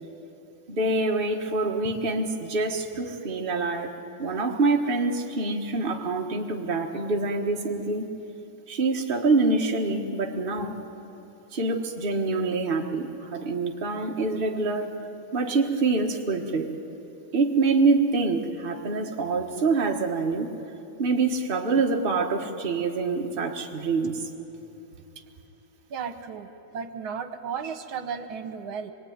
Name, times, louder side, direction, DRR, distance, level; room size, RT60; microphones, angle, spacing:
voice 1, 0.7-3.9 4.2-8.1 8.7-10.8 11.5-15.0 15.3-16.7 17.3-20.5 21.0-24.2, right 3 dB, 30° right, 1 dB, 1.5 m, -25 dB
voice 2, 25.9-28.9, right 6 dB, 75° right, 7 dB, 1.9 m, -34 dB
25.5 x 22.5 x 9.5 m, 3.0 s
omnidirectional pair, 2.3 m